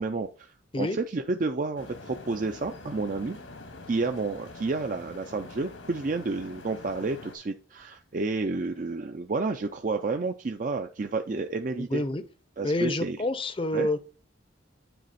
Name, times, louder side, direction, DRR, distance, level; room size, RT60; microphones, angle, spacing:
voice 1, 0.0-3.4 3.9-12.0 12.6-13.2 13.7-13.9, right 3 dB, 40° right, 0.4 m, -30 dB
sound 1, 1.8-7.4, left 2 dB, 80° left, 1.7 m, -45 dB
voice 2, 11.9-12.2 12.6-14.0, left 1 dB, 25° left, 0.6 m, -28 dB
9.3 x 4.1 x 4.1 m
head